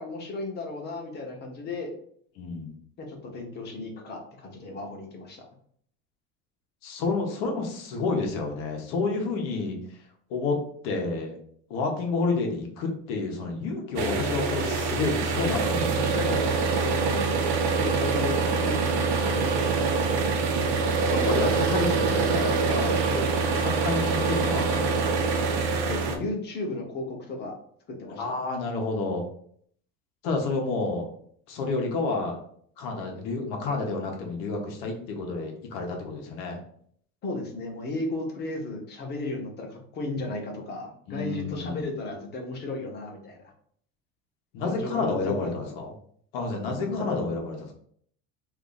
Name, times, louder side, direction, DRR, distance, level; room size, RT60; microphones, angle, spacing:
voice 1, 0.0-1.9 3.0-5.5 15.7-17.3 17.7-20.1 25.9-27.6 28.0-28.3 37.2-43.4 44.6-45.7 46.9-47.4, left 2 dB, 35° left, 1 dB, 0.9 m, -35 dB
voice 2, 2.4-2.7 6.8-9.8 10.3-10.6 10.8-11.4 11.7-16.5 18.1-18.2 21.0-25.2 28.1-29.3 30.2-31.1 31.5-32.4 32.8-36.6 41.1-41.9 44.5-45.9 46.3-47.6, left 3 dB, 80° left, 1 dB, 1.0 m, -30 dB
sound 1, 14.0-26.2, right 4 dB, 70° right, 0.7 m, -25 dB
2.7 x 2.5 x 3.9 m, 0.63 s
cardioid pair, 140°, 30 cm